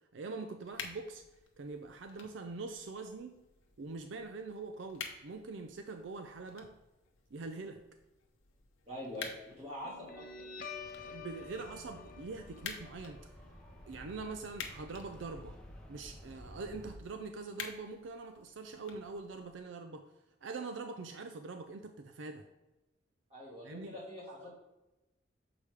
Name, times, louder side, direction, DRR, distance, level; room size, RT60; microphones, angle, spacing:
voice 1, 0.1-1.2 1.6-3.4 3.8-6.7 7.3-7.8 11.0-13.2 13.9-15.6 15.9-20.1 20.4-22.5 23.6-24.0, right 3 dB, 75° right, 7 dB, 0.4 m, -43 dB
sound 1, 0.6-19.6, left 6 dB, 85° left, 0.9 m, -51 dB
voice 2, 8.9-10.5 23.3-24.5, left 1 dB, 30° right, -7 dB, 1.8 m, -44 dB
Guitar, 9.8-16.8, left 5 dB, 45° left, 0.8 m, -50 dB
sound 2, 10.7-17.0, equal, 5° left, 0.7 m, -53 dB
6.9 x 4.8 x 3.3 m, 0.98 s
head